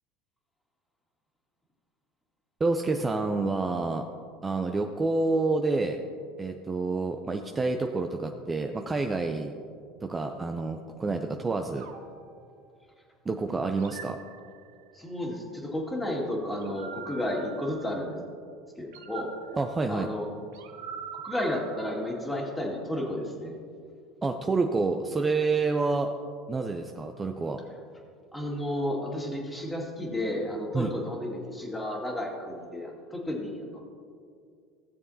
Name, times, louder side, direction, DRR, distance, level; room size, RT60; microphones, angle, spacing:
voice 1, 2.6-4.0 4.4-6.0 6.4-9.5 10.0-11.9 13.3-14.2 19.5-20.1 24.2-26.1 26.5-27.6 30.7-30.9, right 3 dB, 20° right, 4 dB, 0.5 m, -28 dB
sound 1, 11.8-13.1 13.8-15.0 16.5-18.3 18.9-22.4, right 7 dB, 80° right, 0.8 m, -45 dB
voice 2, 14.9-18.2 18.8-19.3 19.9-20.3 21.2-23.6 28.3-33.8, left 1 dB, 10° left, -2 dB, 2.0 m, -32 dB
16.0 x 7.0 x 2.8 m, 2.3 s
hypercardioid pair, 90°, 0 cm